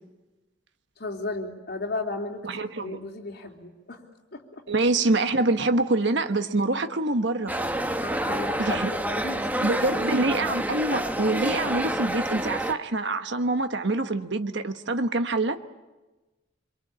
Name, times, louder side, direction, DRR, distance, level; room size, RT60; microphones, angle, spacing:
voice 1, 1.0-4.0 4.3-4.6 8.0-9.5 9.9-10.4, left 2 dB, 55° left, 3.4 m, -35 dB
voice 2, 2.4-3.0 4.7-7.5 8.6-8.9 9.6-15.6, right 2 dB, 60° right, 1.3 m, -25 dB
sound 1, 7.5-12.7, right 1 dB, 10° right, 1.2 m, -28 dB
26.0 x 23.0 x 8.7 m
head